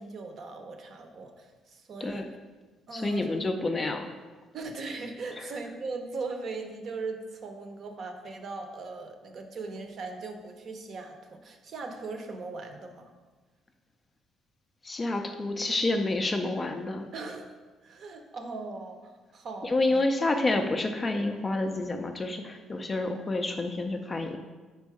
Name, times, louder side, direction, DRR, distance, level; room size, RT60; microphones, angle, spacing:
voice 1, 0.0-2.3 2.9-3.2 4.5-13.1 17.1-20.0, right 3 dB, 40° right, 5 dB, 0.6 m, -39 dB
voice 2, 2.9-4.1 5.4-5.5 14.8-17.1 19.6-24.4, left 2 dB, 20° left, 5 dB, 0.3 m, -29 dB
5.2 x 4.5 x 4.7 m, 1.3 s
cardioid pair, 175°, 0 cm